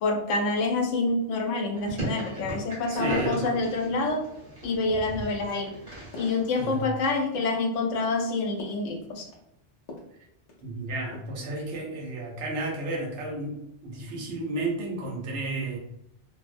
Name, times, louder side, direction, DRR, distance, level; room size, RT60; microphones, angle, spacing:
voice 1, 0.0-4.3 4.6-5.7 6.2-9.3, left 3 dB, 90° left, 2 dB, 0.9 m, -27 dB
sound 1, 1.8-6.9, right 1 dB, 45° right, 1.0 m, -36 dB
voice 2, 3.0-3.4 6.6-6.8 10.6-15.8, right 2 dB, 75° right, -1 dB, 1.0 m, -32 dB
sound 2, 4.5-4.6 4.9-5.1 5.5-5.6 6.1-6.4 6.7-7.1 7.3-7.6 7.9-8.2 8.6-8.8 9.2-9.4 9.9-10.1 10.5-10.8 11.1-11.4, left 2 dB, 55° left, 0.5 m, -45 dB
2.5 x 2.0 x 2.4 m, 0.81 s
omnidirectional pair, 1.2 m